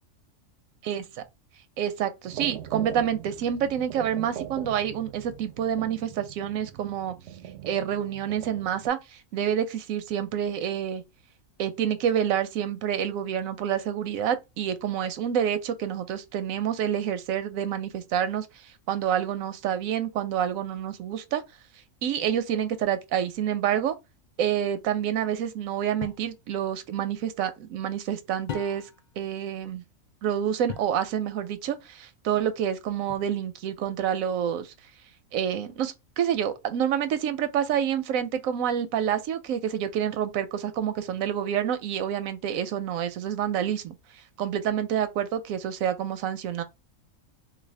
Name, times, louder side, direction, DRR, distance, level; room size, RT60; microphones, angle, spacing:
voice 1, 0.8-1.2 1.8-7.2 7.7-11.0 11.6-21.4 22.0-24.0 24.4-28.9 29.2-29.8 30.2-34.7 35.3-46.6, right 9 dB, 85° right, 1.0 m, -28 dB
sound 1, 2.2-8.9, right 11 dB, 65° right, 0.7 m, -40 dB
sound 2, 26.0-26.3 28.5-29.1 30.7-31.0 33.1-33.6, left 8 dB, 80° left, 0.4 m, -39 dB
3.3 x 2.2 x 3.2 m
omnidirectional pair, 1.4 m